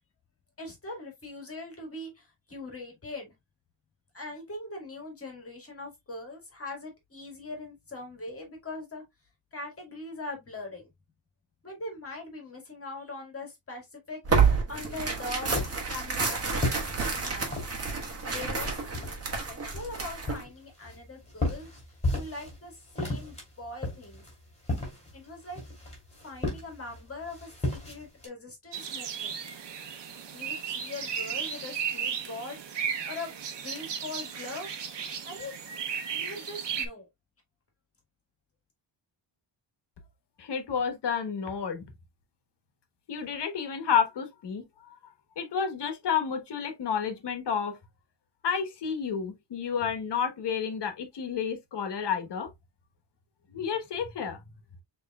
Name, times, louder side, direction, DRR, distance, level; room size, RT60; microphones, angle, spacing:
voice 1, 0.6-3.3 4.1-9.0 9.5-10.9 11.6-15.6 15.9-16.7 17.1-17.5 18.2-19.2 19.5-21.7 22.1-24.2 25.1-25.6 26.2-29.4 30.3-34.7 35.2-35.5 36.1-37.1, left 2 dB, 30° left, 1.7 m, -41 dB
Tearing, 14.2-20.4, right 5 dB, 30° right, 1.5 m, -29 dB
sound 1, 15.2-17.8 18.2-19.3 19.7-22.6 22.8-28.3, left 2 dB, 15° left, 2.7 m, -34 dB
sound 2, 28.7-36.9, right 7 dB, 65° right, 1.0 m, -35 dB
voice 2, 40.4-41.9 43.1-45.0 45.4-47.8 48.4-52.5 53.5-54.4, left 7 dB, 65° left, 1.2 m, -30 dB
6.7 x 3.1 x 2.3 m
wide cardioid pair, 165°, 45 cm